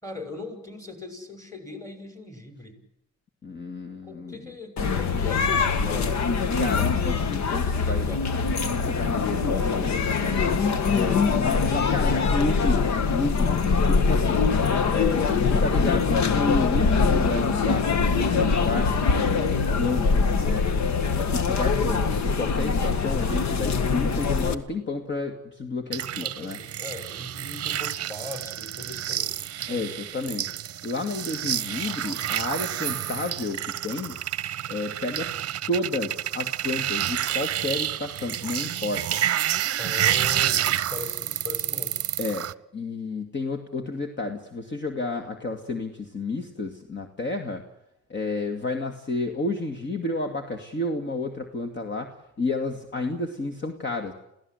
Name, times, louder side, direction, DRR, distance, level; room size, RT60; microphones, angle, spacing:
voice 1, 0.0-2.8 4.0-6.1 7.6-8.2 9.4-10.6 21.4-21.6 26.2-29.9 39.8-41.9, left 2 dB, 10° left, 6 dB, 6.9 m, -40 dB
voice 2, 3.4-4.5 6.6-8.1 8.7-9.9 10.9-14.5 14.9-20.7 21.1-26.6 29.7-30.5 30.8-34.2 34.7-35.3 35.7-39.2 42.2-42.5 42.7-47.6 48.1-54.1, left 3 dB, 35° left, 5 dB, 2.4 m, -31 dB
sound 1, 4.8-24.5, left 5 dB, 65° left, 1.7 m, -23 dB
sound 2, 25.9-42.5, right 11 dB, 50° right, 0.8 m, -29 dB
28.5 x 16.5 x 8.1 m, 0.83 s
cardioid pair, 90°, 30 cm